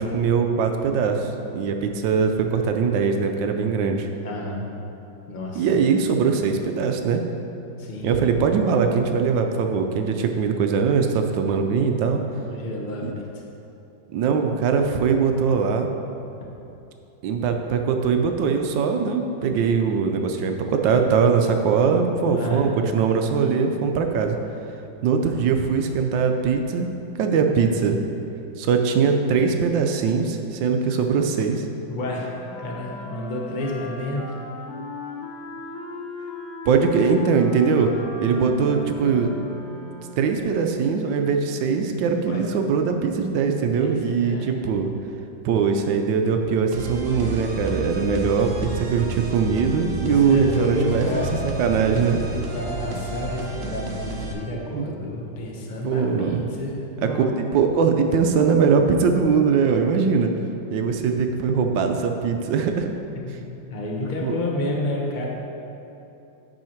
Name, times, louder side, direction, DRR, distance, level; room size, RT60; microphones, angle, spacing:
voice 1, 0.0-4.1 5.5-7.2 8.0-12.2 13.0-13.1 14.1-15.9 17.2-24.4 25.0-26.9 27.2-28.0 28.6-31.7 36.7-37.9 38.2-39.3 40.2-44.9 45.4-51.0 51.4-52.2 54.7-54.9 55.8-56.4 57.2-57.3 57.5-60.3 60.7-62.9 64.2-64.4, right 5 dB, 75° right, 5 dB, 1.3 m, -21 dB
voice 2, 4.2-4.6 5.3-5.7 7.8-8.1 12.4-13.4 22.3-22.9 31.9-32.3 32.6-34.2 38.2-38.4 41.9-42.4 43.8-44.7 50.0-51.3 52.3-57.3 63.1-63.4 63.7-65.3, left 1 dB, 35° left, -2 dB, 0.9 m, -30 dB
Wind instrument woodwind instrument, 31.9-40.5, left 3 dB, 80° left, 1.7 m, -37 dB
sound 1, 46.7-54.3, right 2 dB, 55° right, 0.9 m, -31 dB
9.0 x 5.6 x 4.4 m, 2.9 s
omnidirectional pair, 2.1 m